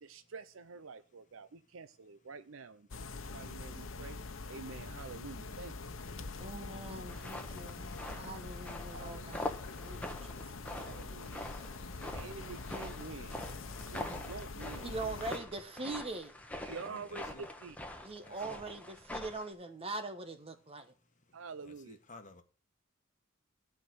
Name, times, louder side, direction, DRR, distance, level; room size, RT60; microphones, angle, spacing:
voice 1, 0.0-4.2 4.5-5.7 7.6-7.7 8.9-9.3 10.8-11.5 12.1-13.6 13.9-15.2 16.6-17.8 21.3-22.0, right 4 dB, 80° right, 0.6 m, -48 dB
sound 1, 2.9-15.4, left 3 dB, 80° left, 1.0 m, -44 dB
voice 2, 5.8-6.9 7.5-8.0 11.8-12.5 16.6-17.5 18.2-18.6 21.6-22.4, left 2 dB, 40° left, 1.4 m, -55 dB
voice 3, 6.4-7.9 8.2-10.6 14.8-16.3 18.0-20.9, right 2 dB, 30° right, 1.1 m, -42 dB
sound 2, 7.1-19.5, left 1 dB, 5° left, 1.2 m, -44 dB
14.5 x 4.9 x 6.3 m
head